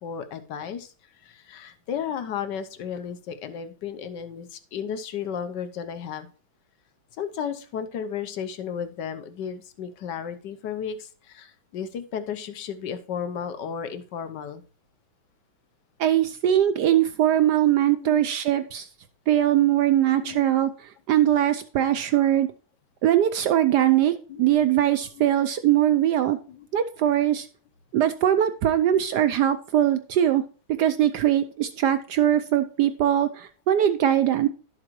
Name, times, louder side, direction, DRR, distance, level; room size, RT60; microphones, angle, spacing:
voice 1, 0.0-6.3 7.2-14.6 18.0-18.3 20.0-20.5 24.3-24.4 25.1-25.3 26.5-26.7, left 7 dB, 65° left, 10 dB, 1.3 m, -34 dB
voice 2, 16.0-18.9 19.3-20.7 21.1-22.5 23.0-26.4 26.7-27.5 27.9-30.4 30.8-34.5, right 11 dB, 70° right, 11 dB, 1.0 m, -21 dB
12.0 x 7.5 x 3.1 m, 0.38 s
omnidirectional pair, 2.2 m